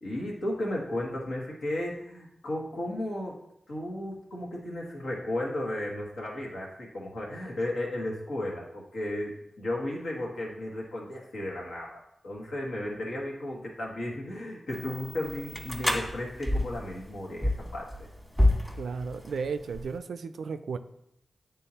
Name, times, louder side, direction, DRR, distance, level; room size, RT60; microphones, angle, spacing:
voice 1, 0.0-3.4 3.7-18.1, left 1 dB, 80° left, -3 dB, 1.4 m, -34 dB
sound 1, 14.7-20.0, left 1 dB, 10° left, 1.4 m, -30 dB
voice 2, 18.8-20.8, right 5 dB, 85° right, 10 dB, 0.3 m, -34 dB
9.1 x 3.7 x 2.8 m, 0.79 s
cardioid pair, 45°, 0 cm